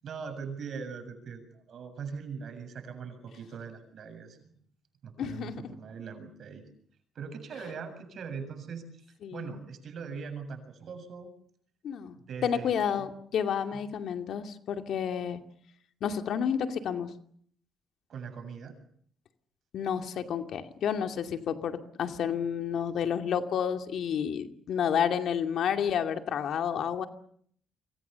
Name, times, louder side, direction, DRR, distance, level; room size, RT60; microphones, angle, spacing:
voice 1, 0.0-4.6 5.0-6.6 7.2-11.3 12.3-13.1 18.1-18.8, right 6 dB, 60° right, 8 dB, 7.4 m, -41 dB
voice 2, 5.2-5.8 9.2-9.5 11.8-12.2 12.4-15.4 16.0-17.1 19.7-27.1, left 8 dB, 70° left, 6 dB, 2.5 m, -30 dB
28.5 x 25.0 x 7.0 m, 0.63 s
cardioid pair, 90°, 0 cm